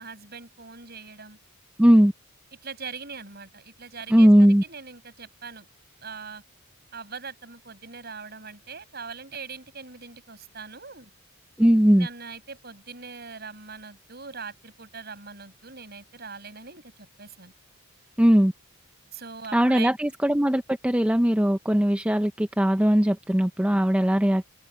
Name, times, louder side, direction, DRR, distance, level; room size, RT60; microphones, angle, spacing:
voice 1, 0.0-1.4 2.6-5.7 6.0-6.4 6.9-11.1 12.0-16.8 17.2-17.5 19.1-19.9, right 5 dB, 45° right, 6.6 m, -41 dB
voice 2, 1.8-2.1 4.1-4.6 11.6-12.1 18.2-18.5 19.5-24.4, equal, 5° right, 0.5 m, -19 dB
head